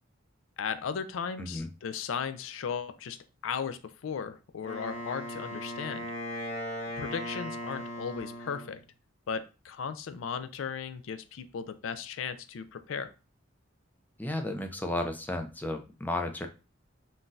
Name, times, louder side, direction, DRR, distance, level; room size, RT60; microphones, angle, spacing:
voice 1, 0.6-3.2 3.4-6.1 7.0-8.8 9.3-13.1, left 6 dB, 75° left, 12 dB, 0.4 m, -36 dB
voice 2, 1.4-1.7 14.2-16.5, left 1 dB, 10° left, 5 dB, 0.4 m, -33 dB
Wind instrument woodwind instrument, 4.6-8.8, equal, 35° left, 1.0 m, -38 dB
3.8 x 2.6 x 2.3 m, 0.31 s
head